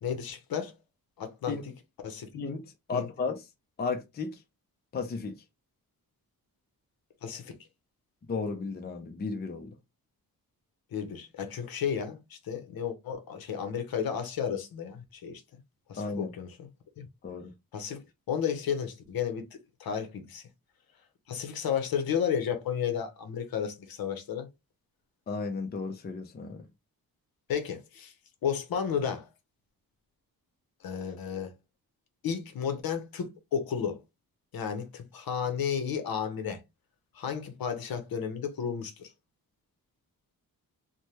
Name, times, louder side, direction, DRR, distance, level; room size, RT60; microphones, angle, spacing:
voice 1, 0.0-0.7 1.2-1.6 2.0-2.3 2.9-3.1 7.2-7.6 10.9-15.4 15.9-16.7 17.0-17.1 17.7-18.0 18.3-20.4 21.3-24.5 27.5-28.1 28.4-29.3 30.8-31.5 32.2-34.0 34.5-36.6 37.1-39.1, left 7 dB, 70° left, 0.7 m, -33 dB
voice 2, 2.3-3.5 3.8-4.4 4.9-5.4 8.3-9.8 16.0-16.3 17.2-17.5 25.3-26.7, left 4 dB, 25° left, 0.5 m, -34 dB
3.3 x 2.1 x 2.8 m
wide cardioid pair, 175°, 37 cm